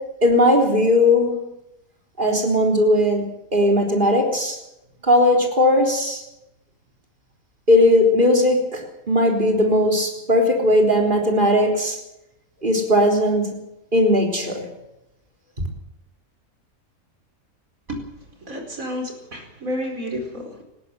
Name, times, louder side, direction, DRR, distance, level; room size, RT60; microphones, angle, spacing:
voice 1, 0.0-1.5 2.2-4.6 5.0-6.2 7.7-12.0 12.6-13.6 13.9-14.7, left 1 dB, 35° right, 1 dB, 4.1 m, -18 dB
voice 2, 18.4-20.6, equal, 70° right, 3 dB, 5.0 m, -30 dB
19.5 x 16.5 x 8.1 m, 0.89 s
omnidirectional pair, 1.5 m